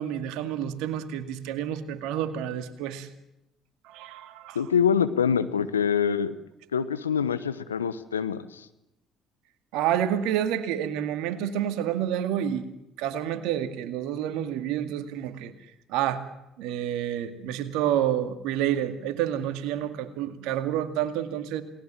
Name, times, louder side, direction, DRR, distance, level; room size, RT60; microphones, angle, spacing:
voice 1, 0.0-3.1 3.8-4.6 9.7-12.7 13.0-15.5 15.9-16.2 16.6-21.6, right 10 dB, 70° right, 9 dB, 2.1 m, -29 dB
voice 2, 4.5-6.3 6.7-8.7, left 7 dB, 90° left, 13 dB, 1.1 m, -25 dB
28.5 x 19.5 x 7.6 m, 0.88 s
hypercardioid pair, 55°, 0 cm